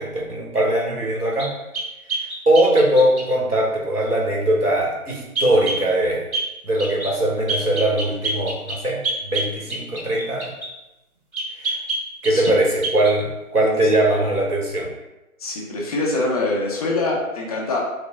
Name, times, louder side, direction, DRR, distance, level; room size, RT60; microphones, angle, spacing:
voice 1, 0.0-1.5 2.5-6.2 6.6-10.5 11.6-11.8 12.2-14.9, right 1 dB, 90° right, -2 dB, 2.8 m, -20 dB
sound 1, 1.4-3.3 5.4-5.8 6.3-6.5 6.8-7.2 7.5-10.7 11.3-12.6 12.8-13.2, right 2 dB, 65° right, 2.7 m, -27 dB
voice 2, 15.4-17.8, left 2 dB, 25° left, -3 dB, 1.4 m, -24 dB
10.0 x 6.2 x 2.6 m, 0.99 s
figure-of-eight pair, 145°, 44 cm